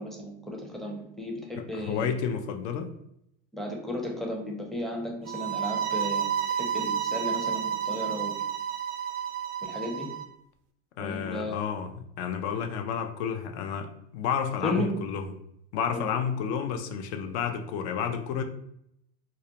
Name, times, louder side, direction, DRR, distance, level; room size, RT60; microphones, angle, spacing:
voice 1, 0.0-2.1 3.5-6.3 6.6-8.3 9.6-10.1 11.0-11.6 14.6-15.0 15.9-16.1, left 1 dB, ahead, -1 dB, 0.5 m, -34 dB
voice 2, 1.6-2.9 11.0-15.3 15.7-18.4, left 7 dB, 70° left, 6 dB, 0.5 m, -31 dB
sound 1, 5.3-10.2, right 8 dB, 55° right, 0.4 m, -30 dB
2.3 x 2.1 x 2.8 m, 0.75 s
supercardioid pair, 95°, 35 cm